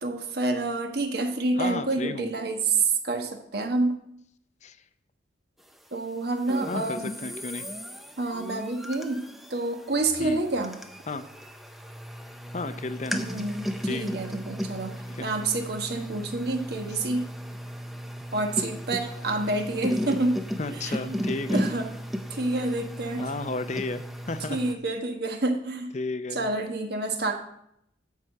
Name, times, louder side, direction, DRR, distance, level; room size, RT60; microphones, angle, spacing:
voice 1, 0.0-4.0 5.9-7.1 8.2-10.7 13.1-17.3 18.3-20.4 20.7-21.2 21.5-21.9 22.3-23.3 24.5-25.9 26.3-27.3, right 2 dB, 60° right, 4 dB, 1.4 m, -28 dB
voice 2, 1.6-2.3 4.6-4.8 6.7-7.7 10.2-10.4 11.1-11.3 12.5-13.2 13.9-14.1 15.1-15.3 20.6-21.7 23.2-24.6 25.9-26.5, left 3 dB, 40° left, 11 dB, 0.6 m, -33 dB
sound 1, 6.4-24.7, equal, ahead, 0.6 m, -35 dB
12.5 x 4.8 x 6.5 m, 0.73 s
head